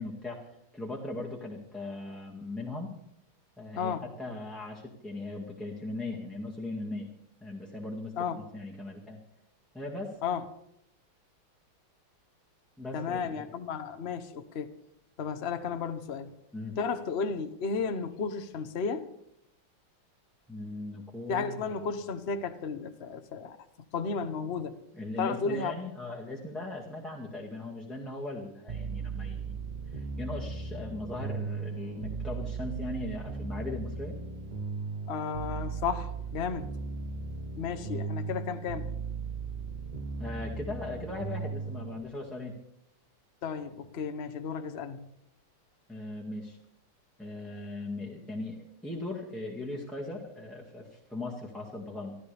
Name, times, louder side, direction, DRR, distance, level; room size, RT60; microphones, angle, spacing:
voice 1, 0.0-2.9 3.6-7.1 7.4-8.1 8.5-9.2 9.7-10.2 12.8-13.5 16.5-16.8 20.5-21.7 24.9-29.6 29.9-34.2 40.2-42.5 45.9-46.6 47.2-48.6 48.8-52.2, left 2 dB, ahead, -4 dB, 1.7 m, -39 dB
voice 2, 3.8-4.1 8.2-8.4 10.2-10.4 12.9-14.7 15.2-16.3 16.8-19.1 21.3-23.6 23.9-24.8 25.2-25.8 35.1-36.7 37.6-38.9 43.4-45.1, left 5 dB, 45° left, 8 dB, 0.8 m, -33 dB
sound 1, 28.7-42.0, right 4 dB, 45° right, 0.6 m, -37 dB
25.0 x 14.5 x 3.4 m, 0.77 s
omnidirectional pair, 2.4 m